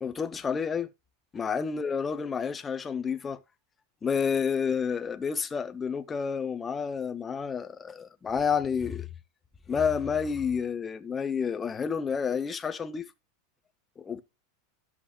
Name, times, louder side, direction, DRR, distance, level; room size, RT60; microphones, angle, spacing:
voice 1, 0.0-0.9 1.3-3.4 4.0-9.1 9.7-13.1 14.0-14.2, left 6 dB, 10° left, 0.4 m, -30 dB
11.5 x 7.1 x 2.3 m
supercardioid pair, 175°, 0 cm